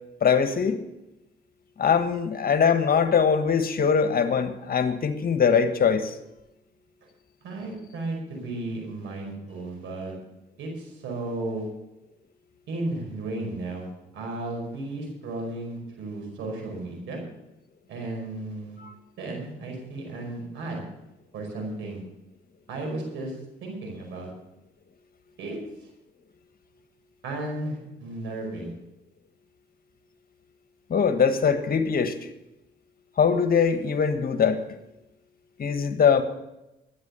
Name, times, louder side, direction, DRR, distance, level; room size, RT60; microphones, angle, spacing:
voice 1, 0.2-0.8 1.8-6.1 18.8-18.9 30.9-32.1 33.2-34.6 35.6-36.2, left 6 dB, 50° left, 9 dB, 1.5 m, -22 dB
voice 2, 7.4-10.1 10.6-11.7 12.7-17.2 17.9-18.8 19.2-20.8 21.3-22.0 22.7-23.3 23.6-24.3 25.4-25.9 27.2-28.7, right 2 dB, 75° right, 1 dB, 5.1 m, -34 dB
12.5 x 9.5 x 6.9 m, 0.93 s
supercardioid pair, 55°, 20 cm